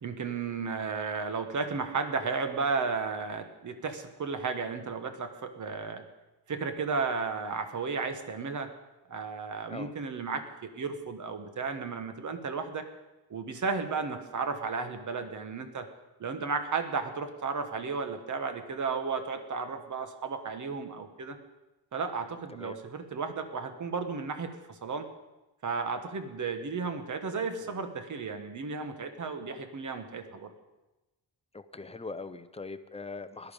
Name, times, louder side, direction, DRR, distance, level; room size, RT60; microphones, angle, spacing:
voice 1, 0.0-6.0 6.5-8.7 9.1-12.9 13.3-15.9 16.2-21.4 21.9-25.1 25.6-30.5, right 4 dB, 45° right, 8 dB, 1.4 m, -34 dB
voice 2, 31.5-33.5, left 3 dB, 15° left, 11 dB, 0.6 m, -41 dB
17.5 x 12.0 x 5.3 m, 1.0 s
wide cardioid pair, 160°, 43 cm